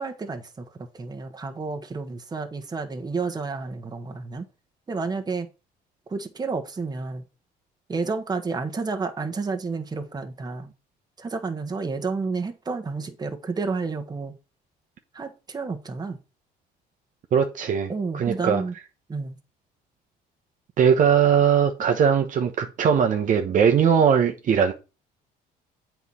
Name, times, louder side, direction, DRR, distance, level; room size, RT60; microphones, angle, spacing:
voice 1, 0.0-4.5 4.9-5.5 6.1-7.2 7.9-10.7 11.2-14.3 15.1-16.2 17.9-18.7 19.1-19.4, right 4 dB, 25° right, 1.4 m, -30 dB
voice 2, 17.3-18.6 20.8-24.7, right 7 dB, 50° right, 1.1 m, -20 dB
8.2 x 4.6 x 5.5 m
cardioid pair, 110°, 17 cm